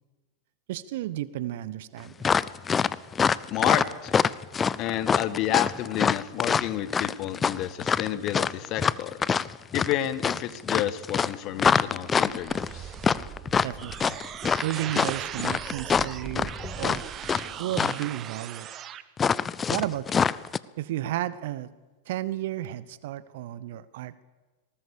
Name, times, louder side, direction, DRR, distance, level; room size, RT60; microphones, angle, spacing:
voice 1, 0.7-2.4 13.6-14.2 14.6-17.1 17.6-18.7 19.7-20.3 20.8-21.7 22.1-24.2, right 13 dB, 55° right, 18 dB, 0.9 m, -33 dB
sound 1, 2.2-17.5 17.7-18.1 19.2-20.6, left 6 dB, 20° left, 0.6 m, -25 dB
voice 2, 3.5-4.1 4.8-9.2 9.7-13.0, left 12 dB, 40° left, 14 dB, 1.4 m, -30 dB
sound 2, 11.4-19.0, right 10 dB, 30° right, 1.0 m, -39 dB
20.5 x 18.5 x 7.0 m, 1.2 s
figure-of-eight pair, 90°, 0 cm